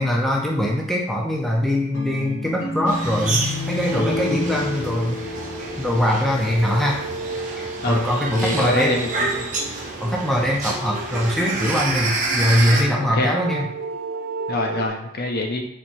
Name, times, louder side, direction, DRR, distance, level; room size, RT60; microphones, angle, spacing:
voice 1, 0.0-5.2 5.8-7.0 7.6-9.0 10.0-13.7, equal, ahead, -2 dB, 0.5 m, -22 dB
sound 1, 1.9-7.0, left 2 dB, 70° left, 1.0 m, -30 dB
sound 2, 2.9-12.8, right 3 dB, 35° right, 0.8 m, -29 dB
sound 3, 5.2-14.9, right 3 dB, 85° right, 0.7 m, -33 dB
voice 2, 8.3-9.5 13.1-13.3 14.5-15.6, left 2 dB, 45° left, 3 dB, 0.6 m, -25 dB
4.2 x 2.9 x 4.4 m, 0.82 s
head